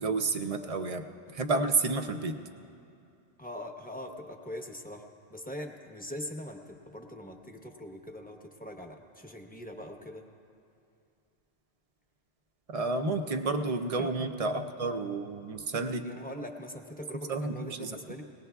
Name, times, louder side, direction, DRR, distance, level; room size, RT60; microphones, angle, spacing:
voice 1, 0.0-2.4 12.7-16.1 17.3-18.0, right 3 dB, 45° right, 6 dB, 0.5 m, -30 dB
voice 2, 3.4-5.0 5.3-10.3 14.0-14.3 16.0-18.2, left 1 dB, 10° left, 2 dB, 0.8 m, -42 dB
21.5 x 18.5 x 2.3 m, 2.5 s
omnidirectional pair, 1.2 m